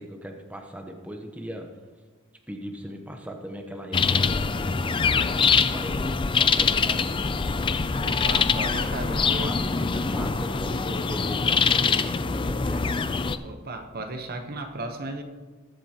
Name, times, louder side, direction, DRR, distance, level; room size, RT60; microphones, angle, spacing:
voice 1, 0.0-1.7 2.5-7.1 9.1-12.8, equal, 5° right, 3 dB, 0.9 m, -39 dB
sound 1, 3.9-13.4, left 5 dB, 25° left, 0.4 m, -24 dB
voice 2, 8.0-9.5 13.4-15.2, right 2 dB, 45° right, 6 dB, 1.0 m, -35 dB
20.0 x 8.0 x 2.9 m, 1.4 s
head